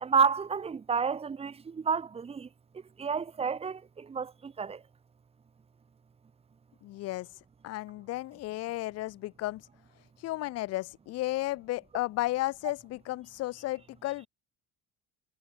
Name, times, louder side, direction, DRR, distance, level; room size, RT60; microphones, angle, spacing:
voice 1, 0.0-2.5 3.0-4.8, right 6 dB, 20° right, 0.8 m, -30 dB
voice 2, 6.8-7.3 7.6-9.6 10.2-14.3, left 17 dB, 50° left, 0.5 m, -33 dB
cardioid pair, 140°, 32 cm